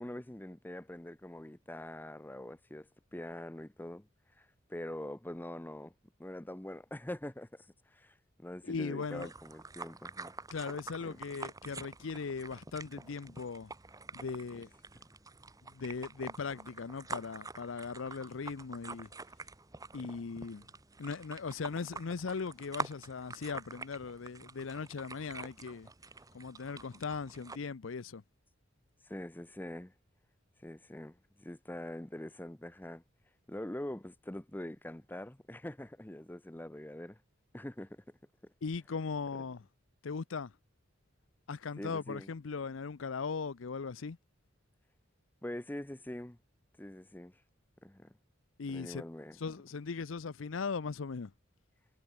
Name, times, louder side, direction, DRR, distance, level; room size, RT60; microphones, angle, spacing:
voice 1, 0.0-4.1 4.4-5.9 6.2-10.3 11.0-11.2 29.0-29.9 30.6-33.0 33.5-37.2 37.5-38.0 38.4-38.5 41.8-42.3 45.4-46.4 46.8-47.4 47.8-48.2 48.7-49.4, left 1 dB, 10° left, 0.7 m, -44 dB
voice 2, 8.7-9.3 10.5-13.7 14.1-14.7 15.7-19.1 19.9-20.6 21.0-25.9 26.3-28.2 38.6-39.6 40.0-40.5 41.5-44.2 48.6-49.0 49.4-51.3, left 5 dB, 80° left, 0.6 m, -39 dB
sound 1, 9.0-27.6, right 3 dB, 20° right, 1.0 m, -47 dB
head